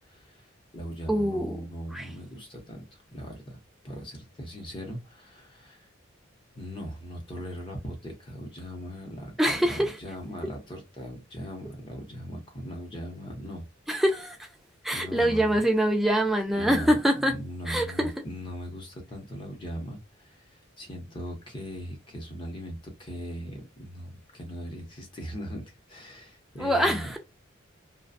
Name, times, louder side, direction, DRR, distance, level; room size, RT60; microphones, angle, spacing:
voice 1, 0.1-0.5 0.7-3.6 3.8-5.8 6.6-13.6 14.9-15.6 16.5-20.4 20.8-27.1, equal, 25° left, 0.8 m, -39 dB
voice 2, 1.1-1.6 1.9-2.1 9.4-9.9 13.9-14.4 14.8-17.4 17.7-18.1 26.6-27.2, equal, ahead, 0.4 m, -24 dB
2.4 x 2.2 x 2.5 m
head